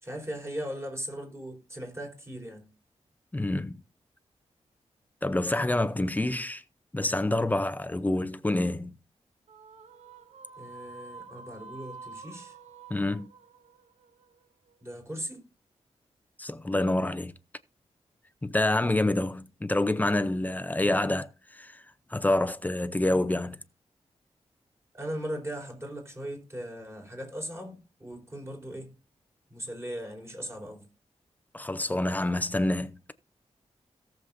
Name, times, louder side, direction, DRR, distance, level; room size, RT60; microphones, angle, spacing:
voice 1, 0.0-2.7 10.6-12.5 14.8-15.5 24.9-28.9 29.5-30.9, equal, 25° right, 4.3 m, -38 dB
voice 2, 3.3-3.8 5.2-6.6 6.9-8.9 12.9-13.3 16.4-17.3 18.4-21.8 22.1-23.6 31.5-32.9, left 1 dB, 15° left, 0.6 m, -27 dB
sound 1, 9.5-14.9, right 4 dB, 75° right, 1.1 m, -48 dB
17.5 x 7.2 x 2.7 m
wide cardioid pair, 105°, 11 cm